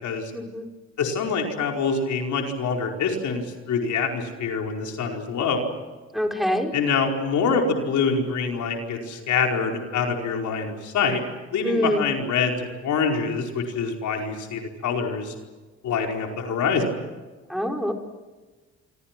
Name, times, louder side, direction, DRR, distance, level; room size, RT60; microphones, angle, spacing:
voice 1, 0.3-0.7 6.1-6.7 11.6-12.0 17.5-17.9, equal, ahead, 3 dB, 4.4 m, -25 dB
voice 2, 1.0-5.7 6.7-11.2 11.5-15.3 15.8-16.9, left 5 dB, 75° left, 2 dB, 4.9 m, -25 dB
28.0 x 24.5 x 6.1 m, 1.3 s
cardioid pair, 90°, 30 cm